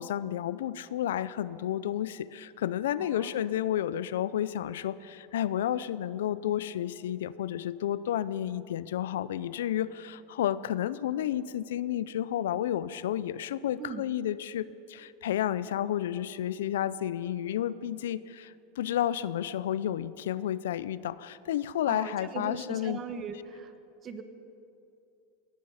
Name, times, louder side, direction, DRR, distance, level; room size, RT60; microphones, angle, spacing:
voice 1, 0.0-23.0, left 11 dB, 85° left, 17 dB, 0.5 m, -31 dB
voice 2, 3.0-3.3 13.8-14.0 21.8-23.7 24.0-24.2, right 5 dB, 35° right, 8 dB, 1.4 m, -39 dB
18.0 x 13.5 x 5.7 m, 2.7 s
supercardioid pair, 120°, 0 cm